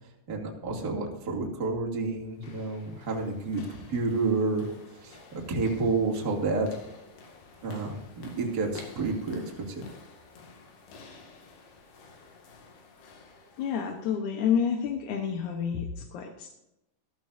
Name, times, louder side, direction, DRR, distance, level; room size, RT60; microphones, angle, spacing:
voice 1, 0.3-3.6 3.9-4.7 5.0-6.7 7.6-9.8, right 3 dB, 30° right, -1 dB, 2.4 m, -30 dB
sound 1, 2.2-14.2, left 4 dB, 80° left, 4.0 m, -51 dB
voice 2, 13.6-16.5, left 7 dB, 65° left, 3 dB, 2.1 m, -29 dB
15.0 x 14.5 x 2.7 m, 0.90 s
omnidirectional pair, 4.5 m